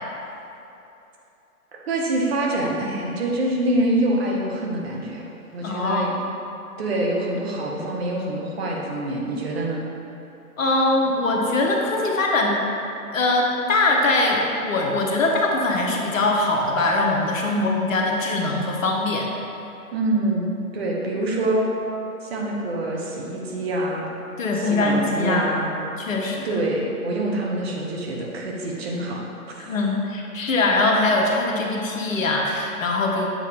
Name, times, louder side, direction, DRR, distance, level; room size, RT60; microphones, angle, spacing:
voice 1, 1.9-5.2 5.5-6.1 6.8-9.8 17.5-17.7 19.9-21.7 22.2-24.1 24.6-25.8 26.4-29.2 29.5-29.7, right 1 dB, 40° right, -2 dB, 1.0 m, -25 dB
voice 2, 5.6-6.1 10.6-12.6 13.1-19.3 24.4-25.5 26.0-26.5 29.6-33.3, left 2 dB, 60° left, 0 dB, 1.0 m, -22 dB
7.5 x 3.9 x 3.4 m, 2.9 s
figure-of-eight pair, 140°, 45 cm